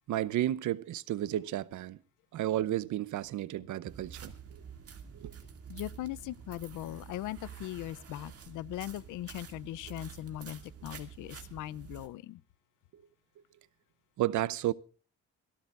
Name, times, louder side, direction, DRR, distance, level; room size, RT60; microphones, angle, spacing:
voice 1, 0.1-2.0 2.3-4.3 5.1-5.3 14.2-14.7, right 13 dB, 75° right, 0.8 m, -32 dB
sound 1, 3.9-12.1, right 8 dB, 50° right, 2.3 m, -48 dB
voice 2, 5.7-12.4, left 14 dB, 85° left, 0.6 m, -40 dB
27.0 x 12.5 x 2.5 m
cardioid pair, 90°, 30 cm